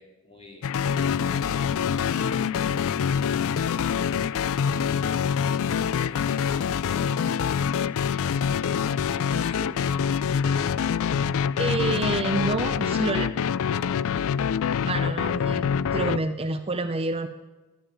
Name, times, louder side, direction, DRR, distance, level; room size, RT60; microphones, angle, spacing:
voice 1, 0.0-2.9, left 1 dB, 25° left, 1 dB, 2.6 m, -47 dB
sound 1, 0.6-16.2, left 7 dB, 65° left, 0.4 m, -25 dB
voice 2, 11.6-13.3 14.8-17.3, right 3 dB, 25° right, 9 dB, 0.5 m, -28 dB
12.0 x 8.8 x 8.9 m, 1.2 s
head